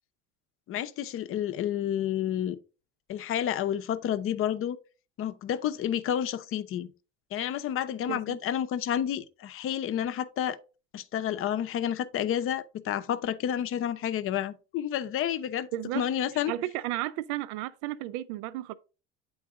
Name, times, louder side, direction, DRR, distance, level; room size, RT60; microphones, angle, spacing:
voice 1, 0.7-2.6 3.1-4.8 5.2-6.9 7.3-10.6 10.9-15.7 15.9-16.5, left 10 dB, 40° left, 0.7 m, -30 dB
voice 2, 15.7-16.0 16.5-18.7, right 15 dB, 80° right, 0.5 m, -33 dB
8.6 x 3.9 x 3.6 m
supercardioid pair, 115°, 33 cm